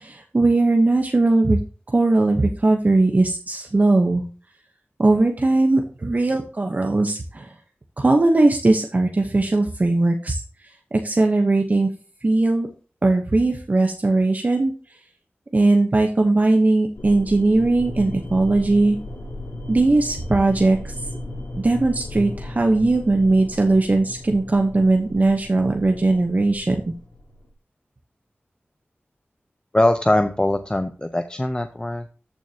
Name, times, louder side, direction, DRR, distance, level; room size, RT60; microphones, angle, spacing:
voice 1, 0.0-1.6 1.9-4.2 5.0-7.5 8.0-10.4 11.0-11.9 12.2-12.7 13.0-14.7 15.5-19.0 19.7-20.9 21.6-26.9, right 2 dB, 40° right, 3 dB, 0.9 m, -19 dB
sound 1, 16.9-27.5, left 1 dB, 75° left, 3.4 m, -35 dB
voice 2, 29.7-32.1, left 1 dB, 20° left, 7 dB, 0.6 m, -21 dB
13.5 x 6.2 x 2.8 m, 0.38 s
wide cardioid pair, 85°, 4 cm